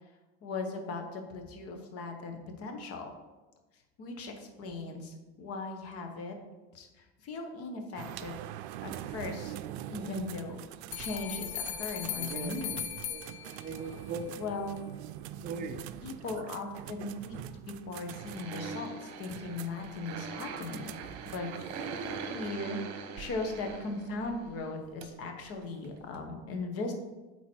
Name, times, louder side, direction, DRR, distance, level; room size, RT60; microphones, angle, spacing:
voice 1, 0.4-3.1 4.0-6.3 6.7-8.5 8.8-9.5 9.9-10.6 10.9-12.7 14.4-14.8 16.0-20.9 21.3-22.0 22.3-22.8 23.2-26.9, left 3 dB, 45° left, 4 dB, 1.3 m, -38 dB
sound 1, 8.0-21.4, right 12 dB, 85° right, 0.5 m, -44 dB
sound 2, 10.9-14.0, left 9 dB, 80° left, 0.9 m, -38 dB
voice 2, 12.1-12.8 13.1-14.4 15.4-16.1 21.4-21.7, right 4 dB, 30° right, 8 dB, 0.5 m, -41 dB
sound 3, 18.1-24.6 25.0-25.1 25.4-25.5 25.8-25.9 26.1-26.2, right 5 dB, 55° right, 1.1 m, -42 dB
8.5 x 4.1 x 4.6 m, 1.2 s
cardioid pair, 135°, 32 cm